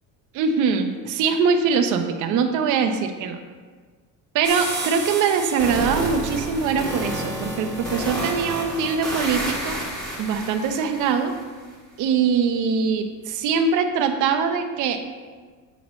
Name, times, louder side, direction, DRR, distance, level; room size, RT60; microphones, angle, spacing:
voice 1, 0.3-3.4 4.3-9.8 10.2-11.3 12.0-15.0, right 5 dB, 55° right, 6 dB, 0.8 m, -22 dB
sound 1, 4.4-11.4, right 1 dB, ahead, 1.5 m, -30 dB
9.0 x 3.1 x 6.1 m, 1.4 s
cardioid pair, 155°, 36 cm